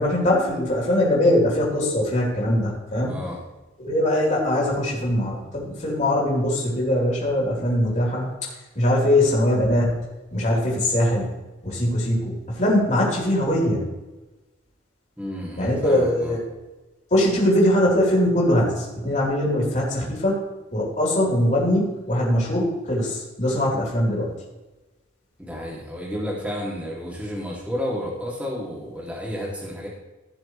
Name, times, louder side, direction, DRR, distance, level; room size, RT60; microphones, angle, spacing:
voice 1, 0.0-3.2 3.8-8.3 8.8-9.9 10.3-11.3 11.6-13.8 15.6-16.4 17.1-20.4 20.7-24.3, left 1 dB, 40° left, -4 dB, 4.1 m, -21 dB
voice 2, 3.0-3.4 15.2-16.4 25.4-29.9, equal, 5° right, -5 dB, 3.0 m, -31 dB
17.0 x 7.0 x 3.4 m, 1.1 s
head